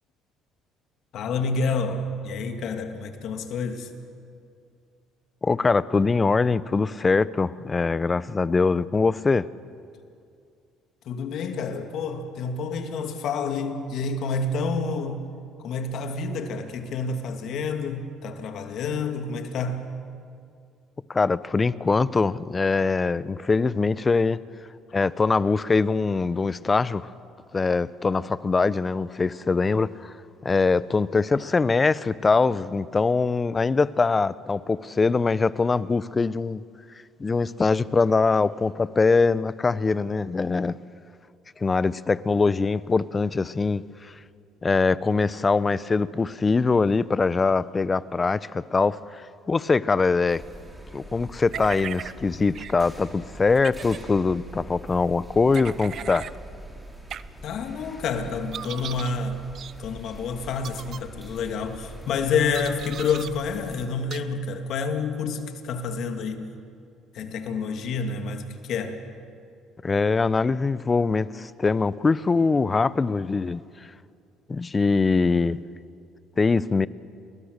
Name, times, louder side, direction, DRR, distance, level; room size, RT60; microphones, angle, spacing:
voice 1, 1.1-3.9 11.0-15.2 15.6-19.8 57.4-59.4 59.8-66.5 67.1-69.0, left 4 dB, 60° left, 2.5 m, -28 dB
voice 2, 5.4-9.5 21.1-24.4 24.9-27.1 27.5-30.1 30.4-36.6 37.2-40.8 41.6-44.1 44.6-50.4 50.9-56.3 69.8-73.6 74.5-75.6 76.4-76.9, left 4 dB, 30° left, 0.8 m, -23 dB
sound 1, 50.3-63.9, right 1 dB, 5° right, 5.0 m, -44 dB
sound 2, 51.5-52.1 52.5-52.7 53.5-54.0 55.5-56.3 57.1-57.2 58.5-59.1 59.5-59.7 60.6-61.0 62.5-63.3 64.1-64.2, right 9 dB, 55° right, 0.8 m, -37 dB
29.5 x 21.5 x 6.7 m
hypercardioid pair, 65°, 0 cm